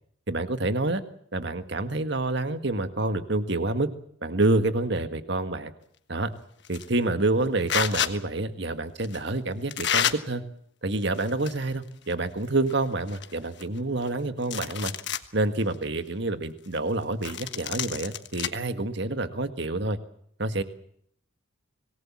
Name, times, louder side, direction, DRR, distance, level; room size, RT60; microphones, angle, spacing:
voice 1, 0.3-1.0 1.3-3.9 4.2-5.7 6.1-6.3 6.7-10.4 10.8-14.9 15.3-20.0 20.4-20.6, right 2 dB, 55° right, 10 dB, 1.7 m, -27 dB
sound 1, 6.6-6.9 7.7-8.1 9.0-9.2 9.7-10.1 11.1-11.7 12.0-12.1 12.7-12.8 13.1-14.1 14.4-15.3 15.7-15.8 17.2-18.5, left 9 dB, 55° left, 1.4 m, -29 dB
26.0 x 19.5 x 7.3 m, 0.67 s
head